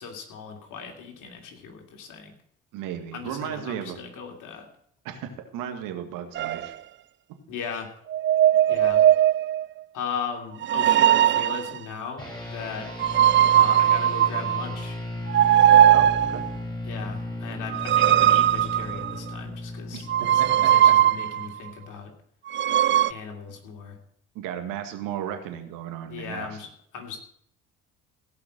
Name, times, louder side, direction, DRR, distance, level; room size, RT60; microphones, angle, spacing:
voice 1, 0.0-2.3 3.1-4.7 7.5-7.9 8.7-9.0 9.9-12.9 13.5-15.0 16.8-22.1 23.1-24.0 26.1-27.2, left 6 dB, 60° left, 3 dB, 2.9 m, -37 dB
voice 2, 2.7-4.0 5.0-6.7 15.9-16.4 19.9-20.9 24.4-26.6, right 9 dB, 70° right, 6 dB, 2.0 m, -35 dB
sound 1, 6.4-6.7 8.1-9.7 10.6-11.8 13.0-14.7 15.3-16.5 17.7-19.3 20.1-21.5 22.5-23.1, right 11 dB, 35° right, 0.4 m, -19 dB
sound 2, 12.2-21.9, left 1 dB, 10° left, 6.7 m, -36 dB
17.0 x 5.8 x 7.8 m, 0.67 s
hypercardioid pair, 55°, 34 cm